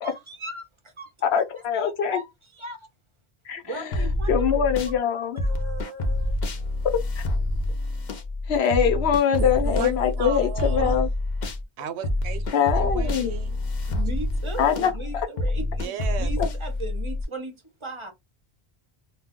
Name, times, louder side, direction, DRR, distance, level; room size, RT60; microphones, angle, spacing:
voice 1, 0.0-1.4 1.7-2.9 3.6-4.7 5.4-6.4 13.9-18.1, right 2 dB, 35° right, 0.6 m, -38 dB
voice 2, 1.3-2.2 3.5-3.9 4.3-5.4 8.5-11.1 12.5-13.4 14.6-14.9 16.4-16.5, left 8 dB, 75° left, 0.9 m, -23 dB
sound 1, 3.9-5.0 5.4-11.6 12.0-17.2, left 1 dB, 50° left, 0.6 m, -27 dB
voice 3, 9.4-11.0 11.8-13.6 15.8-16.3, right 9 dB, 85° right, 0.8 m, -35 dB
2.2 x 2.2 x 3.5 m
omnidirectional pair, 1.1 m